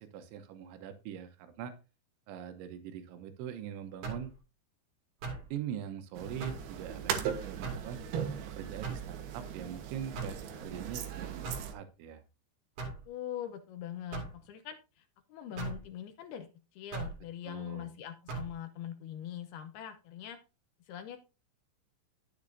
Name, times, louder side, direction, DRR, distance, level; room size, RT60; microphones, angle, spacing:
voice 1, 0.0-1.7 2.3-4.3 5.5-8.0 8.5-11.5 11.7-12.2 17.5-17.9, right 9 dB, 90° right, 8 dB, 3.4 m, -42 dB
sound 1, 4.0-4.3 5.2-5.5 6.4-6.7 7.6-7.9 8.8-9.1 10.2-10.4 11.4-11.7 12.8-13.0 14.1-14.4 15.6-15.8 16.9-17.2 18.3-18.5, right 4 dB, 50° right, 3.5 m, -39 dB
sound 2, 6.2-11.7, right 8 dB, 70° right, 2.9 m, -38 dB
voice 2, 12.8-20.4 20.9-21.2, left 10 dB, 75° left, 8 dB, 2.4 m, -43 dB
12.0 x 8.1 x 2.6 m, 0.30 s
omnidirectional pair, 5.2 m